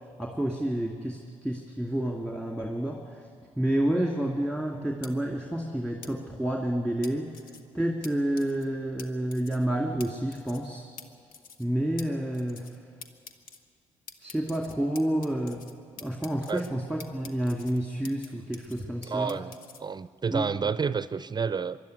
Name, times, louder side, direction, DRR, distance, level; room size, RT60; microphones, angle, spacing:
voice 1, 0.2-3.2 3.6-7.2 7.7-10.9 11.6-12.8 14.2-15.6 16.0-19.4 20.3-20.7, right 1 dB, 5° left, 0 dB, 2.5 m, -29 dB
sound 1, 5.0-5.1 6.0-6.1 7.0-7.6 8.0-8.1 8.4-8.7 9.0-9.1 9.3-9.7 10.0-10.1 10.3-10.7 11.0-11.1 11.3-11.7 12.0-12.1 12.3-12.8 13.0-13.6 14.1-15.7 16.0-16.7 17.0-18.3 18.5-19.8, left 5 dB, 65° left, 1.3 m, -46 dB
voice 2, 19.0-19.5 19.8-21.8, right 5 dB, 25° right, 15 dB, 0.5 m, -29 dB
24.5 x 11.5 x 9.6 m, 2.2 s
hypercardioid pair, 55°, 16 cm